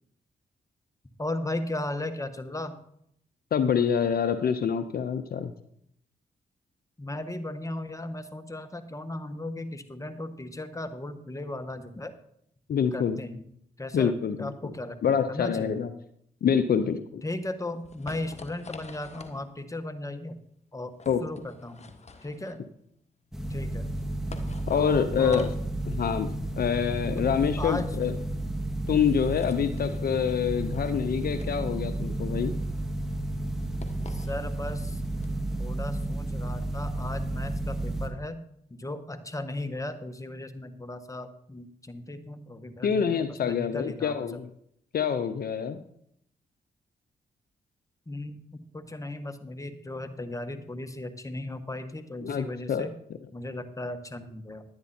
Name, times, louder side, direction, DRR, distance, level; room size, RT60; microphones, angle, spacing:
voice 1, 1.2-2.8 7.0-12.1 12.9-13.4 13.8-15.8 17.2-20.4 20.7-20.9 21.2-21.9 22.2-22.6 23.5-23.9 24.7-25.5 27.6-28.0 29.5-29.8 34.1-35.0 35.6-38.4 38.7-44.2 48.1-52.9 53.3-54.6, left 1 dB, 20° left, 8 dB, 1.4 m, -36 dB
voice 2, 3.5-5.5 12.7-13.2 13.9-14.5 15.0-15.9 16.4-17.2 21.1-21.2 24.7-25.5 25.9-26.3 26.6-28.2 28.9-32.5 42.8-44.5 44.9-45.8 52.2-52.9, left 7 dB, 60° left, 11 dB, 0.7 m, -26 dB
sound 1, 17.2-35.6, left 3 dB, 40° left, 1.5 m, -48 dB
sound 2, 23.3-38.1, right 1 dB, ahead, 2.1 m, -32 dB
11.0 x 9.5 x 4.3 m, 0.71 s
supercardioid pair, 45°, 17 cm